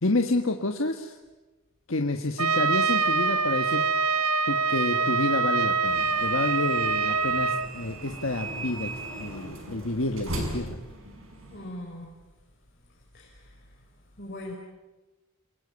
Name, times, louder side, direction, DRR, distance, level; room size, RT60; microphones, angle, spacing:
voice 1, 0.0-1.2 1.9-3.8 4.5-10.8, left 2 dB, 65° left, 5 dB, 1.6 m, -29 dB
Trumpet, 2.4-7.7, right 4 dB, 90° right, 1.3 m, -25 dB
sound 1, 5.9-11.7, right 3 dB, 70° right, 6.5 m, -37 dB
voice 2, 11.5-12.1 13.1-13.5 14.2-14.5, left 1 dB, 45° left, -1 dB, 4.9 m, -40 dB
28.0 x 21.5 x 9.9 m, 1.1 s
head